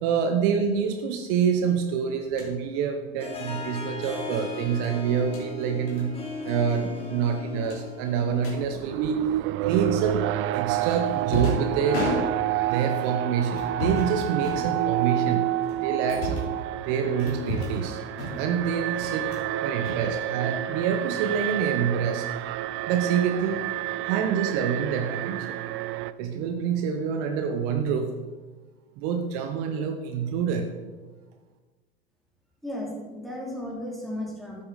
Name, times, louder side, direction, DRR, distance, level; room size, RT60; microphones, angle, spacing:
voice 1, 0.0-6.2 6.4-9.2 9.6-10.3 10.5-12.1 12.7-15.5 15.8-16.5 16.8-18.0 18.4-19.3 19.6-22.3 22.9-23.7 24.0-25.6 26.2-28.1 29.0-30.7, right 7 dB, 55° right, 6 dB, 1.0 m, -27 dB
sound 1, 2.2-2.5 4.0-4.2 5.1-5.5 5.9-6.1 6.3-6.6 6.8-6.9 7.6-8.6 9.7-10.1 10.8-12.7 13.5-14.1 14.4-15.1 15.6-16.6 17.2-17.8 18.1-18.6 19.0-19.5 19.8-20.6, left 1 dB, 70° left, 3.5 m, -33 dB
Harp, 3.2-8.7, left 3 dB, 20° left, 2.8 m, -38 dB
Alarm, 8.2-26.1, right 14 dB, 40° right, 0.4 m, -29 dB
voice 2, 32.6-34.6, left 1 dB, ahead, -3 dB, 2.9 m, -34 dB
9.4 x 8.6 x 4.1 m, 1.3 s
hypercardioid pair, 85°, 32 cm